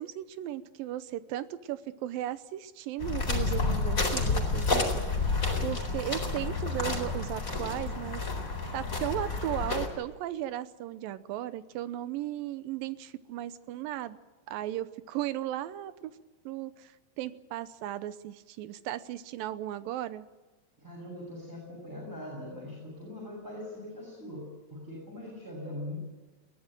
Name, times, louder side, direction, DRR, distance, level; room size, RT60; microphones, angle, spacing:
voice 1, 0.0-5.4 5.6-8.2 8.7-14.2 14.5-16.1 16.5-20.3, right 13 dB, 85° right, 14 dB, 2.6 m, -36 dB
sound 1, 3.0-9.9, left 3 dB, 25° left, 4.1 m, -30 dB
voice 2, 20.8-26.0, left 1 dB, 5° right, -4 dB, 7.2 m, -41 dB
22.0 x 16.5 x 9.1 m, 1.2 s
omnidirectional pair, 3.9 m